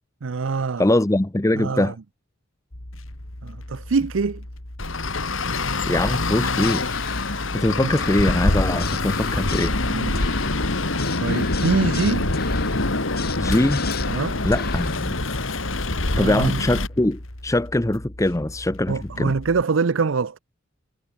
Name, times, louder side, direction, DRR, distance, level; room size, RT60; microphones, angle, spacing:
voice 1, 0.2-0.9 1.5-1.9 3.4-4.4 7.8-7.9 9.9-10.2 10.8-12.3 14.1-14.4 16.1-16.6 18.9-20.4, right 4 dB, 70° right, 0.6 m, -24 dB
voice 2, 0.8-1.9 5.9-6.8 7.2-9.8 13.4-13.8 14.4-15.2 15.5-15.6 16.2-19.3, left 1 dB, 15° left, 0.7 m, -22 dB
sound 1, 2.7-19.6, left 1 dB, 85° left, 3.3 m, -39 dB
Traffic noise roadway noise, 4.8-16.9, left 2 dB, 70° left, 2.5 m, -25 dB
sound 2, 6.6-15.1, left 6 dB, 50° left, 2.5 m, -36 dB
head